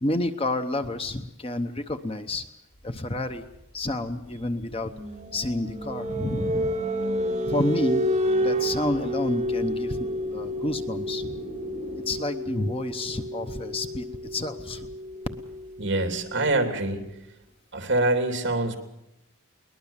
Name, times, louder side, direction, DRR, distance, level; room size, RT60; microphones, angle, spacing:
voice 1, 0.0-2.5 2.8-3.5 3.7-4.9 5.3-6.7 7.5-8.0 8.4-11.4 12.1-14.9, left 1 dB, 25° left, 8 dB, 0.9 m, -29 dB
sound 1, 2.7-12.0, equal, 60° left, 7.8 m, -47 dB
sound 2, 4.9-16.4, equal, 30° right, 1.8 m, -30 dB
voice 2, 15.8-17.1 17.7-18.8, right 2 dB, 55° right, 6 dB, 3.2 m, -25 dB
22.0 x 20.0 x 7.3 m, 0.88 s
head